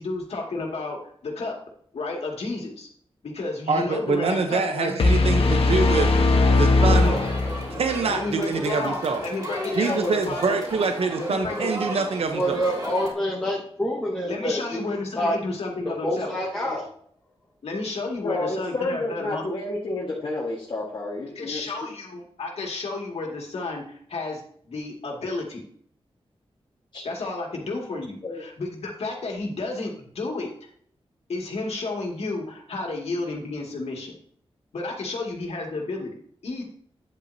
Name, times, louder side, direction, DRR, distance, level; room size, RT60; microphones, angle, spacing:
voice 1, 0.0-1.6 1.9-2.9 3.2-5.5 7.0-7.2 8.1-10.6 11.2-11.6 14.2-16.3 17.6-19.4 21.4-25.6 27.0-30.5 31.3-34.2 34.7-36.6, left 3 dB, 85° left, 0 dB, 2.2 m, -32 dB
voice 2, 3.7-6.1 6.5-7.2 7.8-9.2 9.7-12.6, right 4 dB, 75° right, 6 dB, 0.8 m, -25 dB
sound 1, 5.0-8.0, left 3 dB, 70° left, 1.1 m, -19 dB
Crowd, 6.9-13.1, equal, 40° right, 2.8 m, -34 dB
voice 3, 12.3-15.3 16.0-16.9, equal, 10° left, -6 dB, 1.4 m, -27 dB
voice 4, 18.2-21.7 26.9-27.0 28.2-28.4, left 2 dB, 50° left, -5 dB, 1.5 m, -30 dB
9.9 x 8.4 x 2.7 m, 0.62 s
wide cardioid pair, 155°, 10 cm